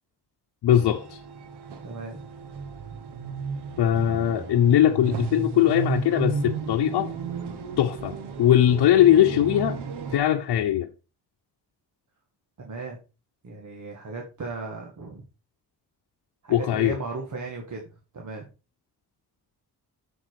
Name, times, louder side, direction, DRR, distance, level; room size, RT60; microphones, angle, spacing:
voice 1, 0.6-1.2 3.8-7.1 7.8-9.8 10.1-10.9 16.5-17.0, left 11 dB, 75° left, 0.9 m, -20 dB
sound 1, 0.7-10.2, right 5 dB, 85° right, 1.4 m, -34 dB
voice 2, 1.8-2.2 12.6-13.0 13.4-15.2 16.4-18.4, right 3 dB, 45° right, 2.0 m, -36 dB
7.7 x 7.6 x 4.9 m
wide cardioid pair, 150°, 40 cm